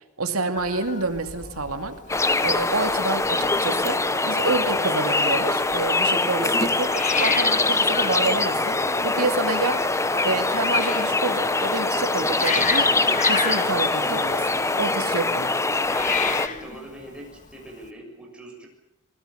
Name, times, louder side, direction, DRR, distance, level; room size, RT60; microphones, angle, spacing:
voice 1, 0.2-2.0 2.4-9.8 10.2-15.5, right 3 dB, 85° right, 8 dB, 2.5 m, -28 dB
Hiss, 0.6-17.9, left 5 dB, 35° left, 1.8 m, -34 dB
sound 1, 2.1-16.5, left 3 dB, 15° left, 0.8 m, -23 dB
voice 2, 16.2-18.7, right 1 dB, 5° right, 0 dB, 6.8 m, -43 dB
25.0 x 21.0 x 7.0 m, 0.87 s
head